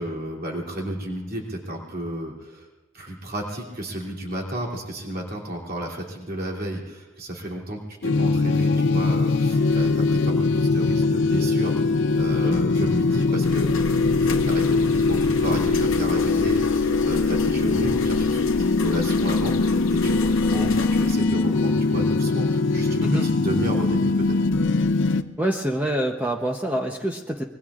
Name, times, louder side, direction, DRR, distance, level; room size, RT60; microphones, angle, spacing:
voice 1, 0.0-2.7 2.9-24.3, right 1 dB, 50° right, -2 dB, 2.9 m, -32 dB
sound 1, 8.0-25.2, left 3 dB, 65° left, 0.6 m, -21 dB
sound 2, 13.4-21.2, left 3 dB, 90° left, 1.0 m, -33 dB
voice 2, 25.4-27.4, right 1 dB, 10° right, 1 dB, 0.7 m, -26 dB
25.5 x 22.0 x 2.4 m, 1.2 s
head